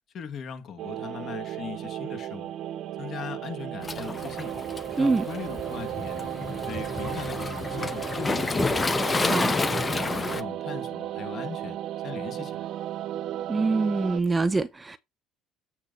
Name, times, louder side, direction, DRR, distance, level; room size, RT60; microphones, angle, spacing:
voice 1, 0.1-2.5 3.0-4.6 5.0-6.3 6.6-8.7 9.1-9.6 9.9-11.8 12.0-12.7, left 7 dB, 50° left, 2.1 m, -39 dB
sound 1, 0.8-14.2, right 12 dB, 60° right, 0.9 m, -34 dB
Waves surf, 3.8-10.4, left 3 dB, 20° left, 0.8 m, -30 dB
voice 2, 13.5-15.0, right 3 dB, 20° right, 0.8 m, -24 dB
8.4 x 3.9 x 5.4 m
supercardioid pair, 95°, 0 cm